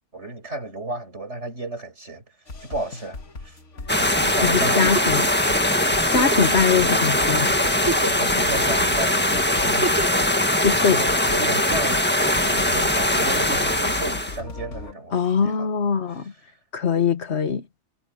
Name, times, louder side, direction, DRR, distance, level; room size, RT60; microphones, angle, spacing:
voice 1, 0.1-2.2 2.6-3.6 4.2-5.1 6.8-7.0 8.2-10.0 10.6-15.7, right 2 dB, 70° right, 6.4 m, -33 dB
sound 1, 2.5-14.9, left 3 dB, 80° left, 2.2 m, -38 dB
sound 2, 3.9-14.4, left 1 dB, 10° left, 1.5 m, -21 dB
voice 2, 4.4-5.3 6.1-7.6 10.6-11.0 15.1-16.3 16.7-17.6, left 6 dB, 65° left, 1.5 m, -22 dB
Giggle, 4.6-5.2 6.1-6.6 7.2-7.3 7.7-8.4 9.6-10.2 11.4-12.1 13.3-13.8 15.3-15.4, right 2 dB, 15° right, 1.7 m, -30 dB
omnidirectional pair, 1.2 m